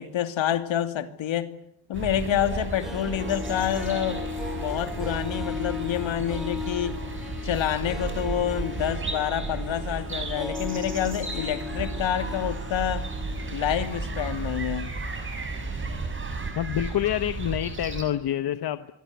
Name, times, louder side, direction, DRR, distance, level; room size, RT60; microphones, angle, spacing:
voice 1, 0.0-1.5 1.9-4.2 4.6-7.0 7.4-13.1 13.5-14.9, left 10 dB, 70° left, 9 dB, 2.8 m, -28 dB
sound 1, 1.9-18.0, right 3 dB, 25° right, 6.0 m, -33 dB
Harp, 2.6-13.7 13.9-14.0, left 5 dB, ahead, 3.4 m, -37 dB
voice 2, 16.5-18.9, left 11 dB, 50° left, 11 dB, 1.2 m, -27 dB
25.5 x 22.5 x 9.5 m, 0.69 s
cardioid pair, 175°, 48 cm